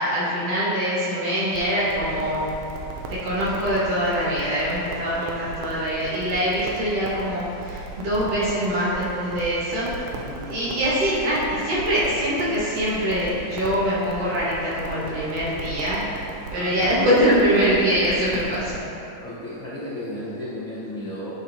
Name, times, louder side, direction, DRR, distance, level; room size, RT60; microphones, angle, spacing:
voice 1, 0.0-2.5 3.1-10.1 10.5-16.0 16.5-18.8, equal, 55° right, -9 dB, 2.1 m, -23 dB
Crackle, 1.5-18.8, right 3 dB, 80° right, 1.8 m, -37 dB
voice 2, 10.1-10.4 16.5-17.0 19.2-21.3, left 1 dB, 80° left, -10 dB, 1.1 m, -34 dB
8.8 x 4.7 x 2.7 m, 2.6 s
omnidirectional pair, 3.8 m